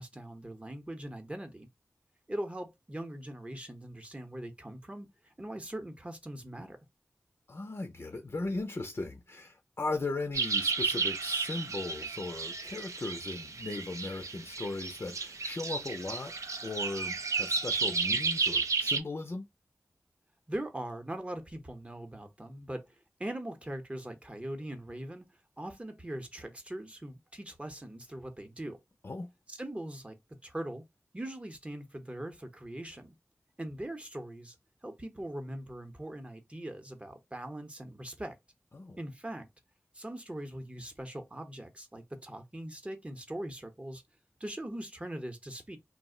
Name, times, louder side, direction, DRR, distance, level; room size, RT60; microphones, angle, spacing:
voice 1, 0.0-1.7 2.3-6.8 20.5-25.2 25.6-28.8 29.5-30.2 30.4-30.8 31.1-33.1 33.6-34.5 34.8-38.3 39.0-39.5 39.9-44.0 44.4-45.8, right 1 dB, 20° right, 0.7 m, -41 dB
voice 2, 7.5-16.3 16.6-19.5 29.0-29.3 38.7-39.0, left 2 dB, 50° left, 0.5 m, -37 dB
sound 1, 10.3-19.0, right 4 dB, 75° right, 0.4 m, -32 dB
2.4 x 2.0 x 3.6 m
wide cardioid pair, 50°, 5 cm